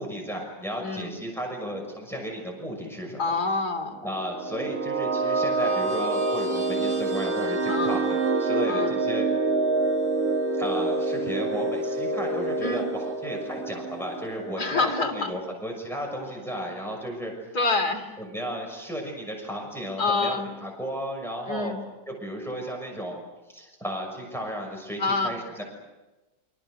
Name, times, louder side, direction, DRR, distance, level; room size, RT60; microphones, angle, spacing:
voice 1, 0.0-3.4 4.0-9.2 10.5-17.6 18.2-21.7 22.1-23.2 23.5-25.6, equal, ahead, 0 dB, 6.4 m, -34 dB
voice 2, 0.8-1.1 3.2-4.0 7.7-8.0 8.7-8.9 12.6-12.9 14.6-15.3 17.5-18.1 20.0-20.5 21.5-21.8 25.0-25.3, left 3 dB, 55° left, 4 dB, 3.3 m, -27 dB
sound 1, 4.1-15.0, right 3 dB, 45° right, 3.0 m, -27 dB
29.5 x 26.5 x 6.5 m, 1.1 s
omnidirectional pair, 2.0 m